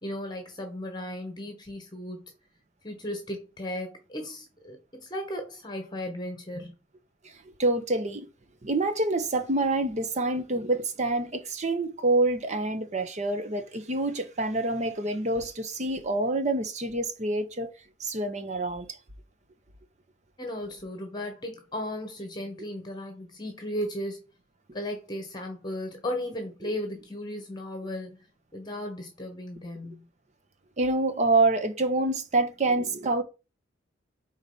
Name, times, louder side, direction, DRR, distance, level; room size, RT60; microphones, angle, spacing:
voice 1, 0.0-2.3 2.8-6.7 20.4-24.2 24.7-28.2 28.5-30.1, left 1 dB, 20° left, 1.2 m, -36 dB
voice 2, 7.6-8.3 8.6-17.7 18.0-18.9 26.6-26.7 30.8-33.2, right 2 dB, 35° right, 0.8 m, -27 dB
4.8 x 4.0 x 5.5 m
head